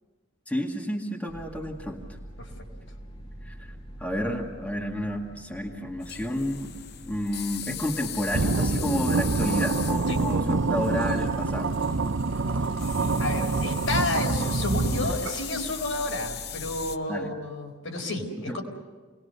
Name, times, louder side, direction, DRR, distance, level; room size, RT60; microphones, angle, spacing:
voice 1, 0.5-2.0 3.4-3.7 4.0-6.7 7.1-11.7 17.1-17.3 18.5-18.6, left 1 dB, 5° left, -1 dB, 2.0 m, -30 dB
sound 1, 1.3-17.0, right 1 dB, 30° left, 1.8 m, -45 dB
sound 2, 6.0-17.0, left 10 dB, 50° left, 0.7 m, -39 dB
sound 3, 8.3-15.6, right 3 dB, 65° right, 0.7 m, -26 dB
voice 2, 13.2-18.6, left 2 dB, 80° left, 1 dB, 4.4 m, -31 dB
28.5 x 20.5 x 6.7 m, 1.3 s
head